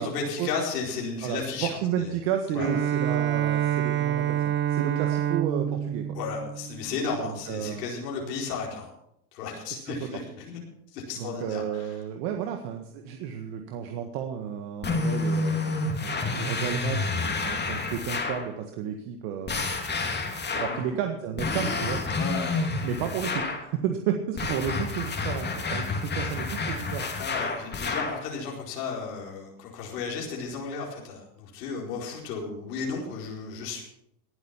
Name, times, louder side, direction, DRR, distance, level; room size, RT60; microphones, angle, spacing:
voice 1, 0.0-1.7 2.0-2.1 2.5-2.7 6.1-8.9 9.3-10.6 10.9-11.9 20.7-20.8 22.2-22.5 27.2-33.8, left 5 dB, 85° left, -2 dB, 4.6 m, -34 dB
voice 2, 1.2-6.2 7.2-7.9 9.7-10.1 11.2-19.8 20.5-22.0 22.8-27.1, right 8 dB, 65° right, 5 dB, 1.8 m, -32 dB
Bowed string instrument, 2.6-7.3, right 10 dB, 25° right, 0.6 m, -27 dB
sound 1, 14.8-18.5 19.5-20.9 21.4-23.7 24.4-28.2, left 3 dB, 20° left, 2.9 m, -29 dB
19.0 x 8.3 x 5.8 m, 0.77 s
supercardioid pair, 115°, 47 cm